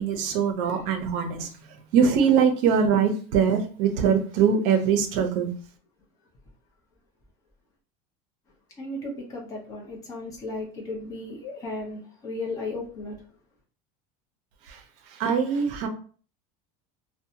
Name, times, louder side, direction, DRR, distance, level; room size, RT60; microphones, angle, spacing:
voice 1, 0.0-1.5 1.9-5.5 14.7-14.8 15.1-15.9, right 7 dB, 50° right, 0.6 m, -22 dB
voice 2, 8.8-13.4, left 2 dB, 20° left, 0.7 m, -35 dB
2.6 x 2.2 x 2.7 m
cardioid pair, 175°, 17 cm